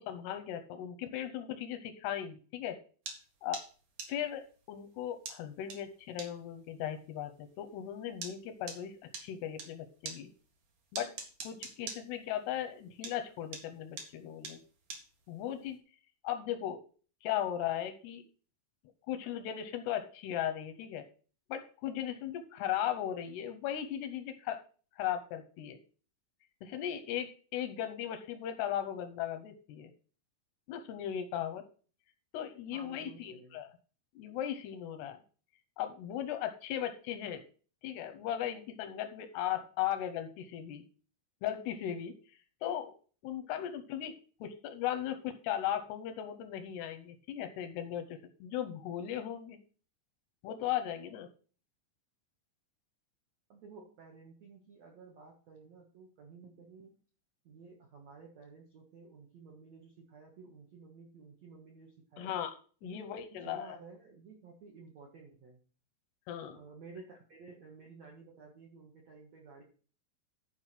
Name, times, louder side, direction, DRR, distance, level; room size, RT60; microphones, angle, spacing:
voice 1, 0.0-2.8 3.4-3.6 4.1-10.3 10.9-11.1 11.4-14.6 15.3-15.8 16.2-16.8 17.2-18.2 19.1-21.1 21.5-24.6 25.0-25.8 26.6-29.9 30.7-31.6 32.3-33.7 34.2-35.2 35.8-37.4 37.8-40.8 41.4-42.9 43.2-49.6 50.4-51.3 62.2-62.5 62.8-63.8 66.3-66.6, left 10 dB, 80° left, 8 dB, 2.4 m, -37 dB
sound 1, 3.1-9.7 10.1-12.8 13.0-15.7, right 5 dB, 55° right, 2.4 m, -43 dB
voice 2, 32.7-33.6 53.5-56.9 57.4-62.4 62.8-65.6 66.5-69.6, right 4 dB, 75° right, 0 dB, 1.5 m, -53 dB
11.5 x 4.8 x 5.8 m, 0.40 s
omnidirectional pair, 5.6 m